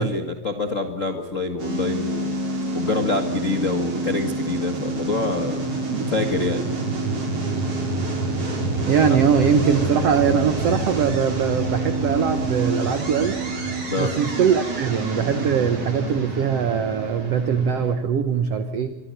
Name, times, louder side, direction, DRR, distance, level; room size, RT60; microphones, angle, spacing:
voice 1, 0.0-2.3 2.7-5.6 6.1-6.7 13.9-14.1, left 3 dB, 70° left, 6 dB, 0.7 m, -26 dB
sound 1, 1.6-17.9, right 2 dB, 40° right, 5.2 m, -27 dB
voice 2, 8.9-13.4 14.0-19.0, right 7 dB, 80° right, 9 dB, 1.4 m, -21 dB
25.0 x 24.0 x 6.6 m, 0.97 s
omnidirectional pair, 4.4 m